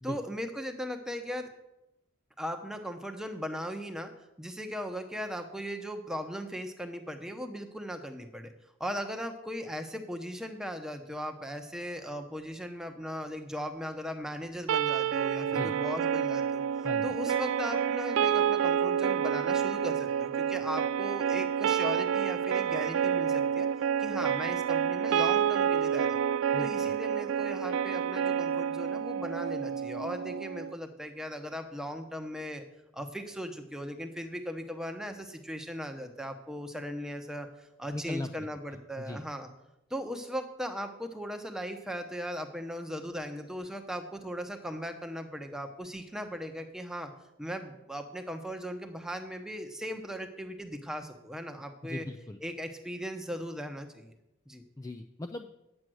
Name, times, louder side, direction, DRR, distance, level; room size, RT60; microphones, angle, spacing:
voice 1, 0.0-1.5 2.4-4.1 4.4-8.5 8.8-16.6 17.0-23.7 24.0-26.2 26.6-32.6 32.9-39.5 39.9-47.1 47.4-52.1 52.4-54.1 54.5-54.6, equal, 5° right, 5 dB, 0.8 m, -38 dB
sound 1, 14.7-30.7, right 8 dB, 70° right, 0.3 m, -29 dB
voice 2, 16.8-17.2 26.5-26.7 37.9-38.5 39.0-39.2 51.8-52.4 54.8-55.6, left 2 dB, 15° left, 6 dB, 0.3 m, -38 dB
9.6 x 7.7 x 6.2 m, 0.90 s
head